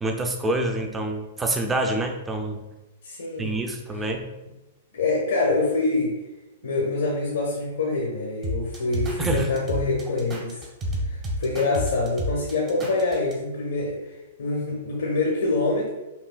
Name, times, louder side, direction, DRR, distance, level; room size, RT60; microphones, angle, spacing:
voice 1, 0.0-2.6 3.4-4.3 9.2-9.5, right 2 dB, 15° right, 4 dB, 0.5 m, -26 dB
voice 2, 3.0-3.6 4.9-6.1 6.6-10.6 11.0-15.9, left 3 dB, 75° left, -2 dB, 0.8 m, -25 dB
sound 1, 8.4-13.3, equal, 30° right, 1.0 m, -30 dB
5.7 x 2.2 x 2.2 m, 1.0 s
hypercardioid pair, 120°, 0 cm